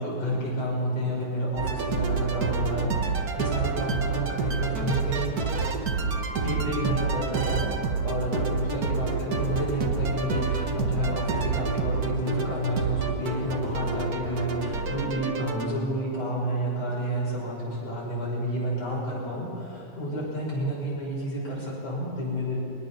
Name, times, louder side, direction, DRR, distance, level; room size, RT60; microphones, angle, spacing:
voice 1, 0.0-5.3 6.4-7.7 8.0-22.6, equal, 55° left, -5 dB, 7.4 m, -30 dB
sound 1, 1.6-15.7, right 4 dB, 50° right, 1.1 m, -28 dB
23.0 x 20.0 x 5.9 m, 2.6 s
omnidirectional pair, 3.4 m